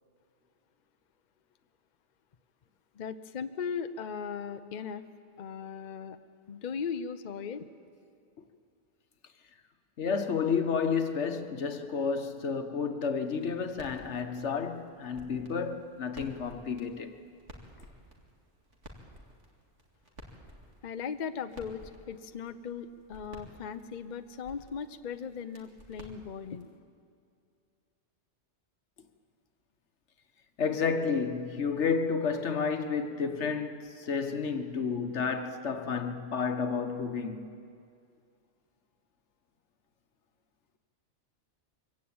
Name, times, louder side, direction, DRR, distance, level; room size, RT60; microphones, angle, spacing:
voice 1, 2.9-5.0 5.4-6.2 6.5-7.7 20.8-26.7, left 6 dB, 45° left, 0.8 m, -38 dB
voice 2, 10.0-17.1 30.6-37.5, left 5 dB, 75° left, 1.5 m, -31 dB
sound 1, 13.3-26.8, equal, 85° right, 2.7 m, -54 dB
23.5 x 16.5 x 8.7 m
omnidirectional pair, 1.2 m